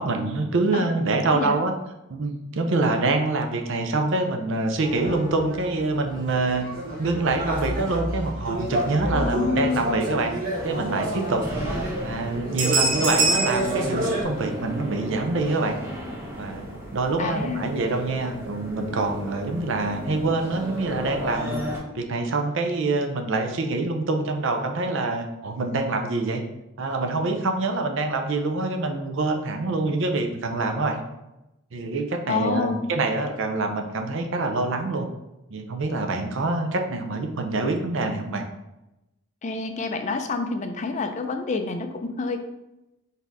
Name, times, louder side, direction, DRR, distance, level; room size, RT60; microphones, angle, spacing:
voice 1, 0.0-1.7 2.1-6.7 7.0-10.3 10.6-11.5 12.0-15.8 16.4-16.6 16.9-21.6 21.9-26.4 26.8-31.0 31.7-35.1 35.5-38.4, right 3 dB, 60° right, 5 dB, 0.6 m, -25 dB
sound 1, 4.8-14.2, right 2 dB, 40° right, 1.1 m, -27 dB
voice 2, 9.1-10.1 17.2-17.7 32.3-32.8 39.4-42.4, left 4 dB, 35° left, 6 dB, 0.4 m, -28 dB
sound 2, 10.5-21.8, equal, 10° right, 0.9 m, -35 dB
4.1 x 2.7 x 4.7 m, 0.93 s
head